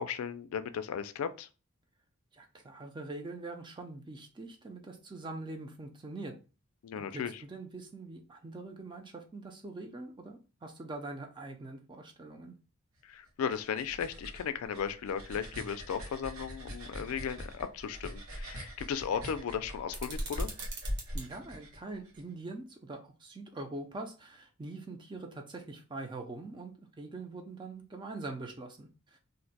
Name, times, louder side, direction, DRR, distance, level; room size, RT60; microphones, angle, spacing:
voice 1, 0.0-1.5 6.8-7.4 13.0-20.5, left 7 dB, 80° left, 0.3 m, -36 dB
voice 2, 2.3-6.3 6.9-12.6 21.1-29.2, right 2 dB, 20° right, 0.4 m, -43 dB
sound 1, 13.3-22.2, equal, 85° right, 1.0 m, -42 dB
sound 2, 19.9-21.3, right 3 dB, 55° right, 1.0 m, -44 dB
2.6 x 2.1 x 4.0 m
head